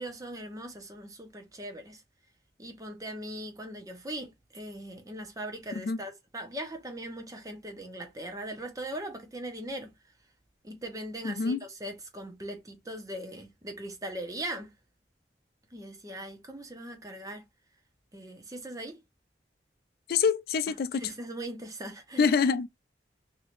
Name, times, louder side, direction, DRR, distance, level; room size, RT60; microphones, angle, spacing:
voice 1, 0.0-2.0 2.6-9.9 10.6-14.7 15.7-17.4 18.1-19.0 20.9-22.3, right 1 dB, 20° right, 0.8 m, -40 dB
voice 2, 11.2-11.6 20.1-21.1 22.2-22.7, left 5 dB, 60° left, 0.3 m, -26 dB
3.3 x 2.8 x 2.5 m
head